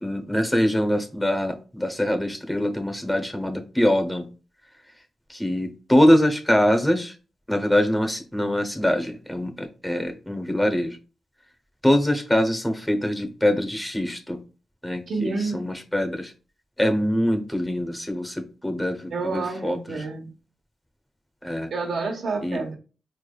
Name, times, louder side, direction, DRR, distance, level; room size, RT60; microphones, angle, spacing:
voice 1, 0.0-4.3 5.3-7.1 7.5-11.0 11.8-14.4 14.8-16.3 16.8-20.0 21.4-21.7 22.4-22.6, left 1 dB, 10° left, 5 dB, 0.8 m, -23 dB
voice 2, 15.1-15.7 19.1-20.3 21.7-22.8, right 3 dB, 70° right, 2 dB, 1.1 m, -29 dB
4.5 x 3.3 x 2.3 m, 0.35 s
cardioid pair, 80°, 0 cm